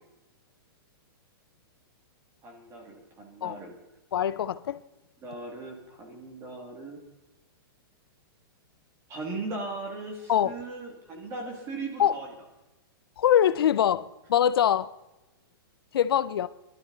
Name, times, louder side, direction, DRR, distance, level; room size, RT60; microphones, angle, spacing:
voice 1, 2.4-3.7 5.2-7.0 9.1-12.3, right 3 dB, 20° right, 2.4 m, -38 dB
voice 2, 4.1-4.8 10.3-10.5 12.0-12.2 13.2-14.9 15.9-16.5, left 10 dB, 80° left, 0.7 m, -23 dB
20.5 x 12.0 x 4.0 m
hypercardioid pair, 160°, 12 cm